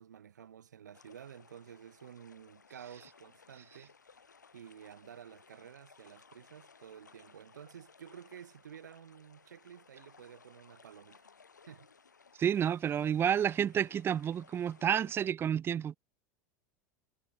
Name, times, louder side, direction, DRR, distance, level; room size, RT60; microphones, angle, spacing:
voice 1, 0.0-11.3 11.6-11.9, right 9 dB, 80° right, 1.4 m, -52 dB
sound 1, 0.9-15.3, left 5 dB, 85° left, 4.7 m, -60 dB
voice 2, 12.4-16.0, right 9 dB, 25° right, 0.3 m, -30 dB
figure-of-eight pair, 80°, 9 cm